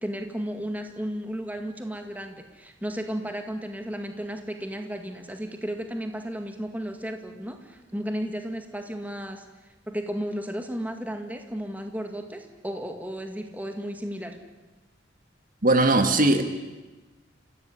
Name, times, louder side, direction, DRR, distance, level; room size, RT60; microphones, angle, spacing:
voice 1, 0.0-9.5 9.9-14.4, equal, 10° right, 5 dB, 2.0 m, -34 dB
voice 2, 15.6-16.4, right 2 dB, 45° right, 7 dB, 1.9 m, -19 dB
29.0 x 16.5 x 10.0 m, 1.2 s
head